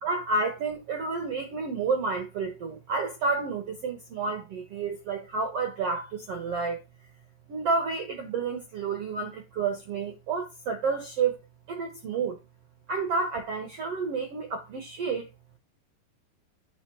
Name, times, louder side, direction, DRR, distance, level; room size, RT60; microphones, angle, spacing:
voice 1, 0.0-6.8 7.5-11.4 11.7-12.4 12.9-15.3, right 4 dB, 75° right, 1.3 m, -30 dB
9.5 x 3.2 x 6.1 m
omnidirectional pair, 4.6 m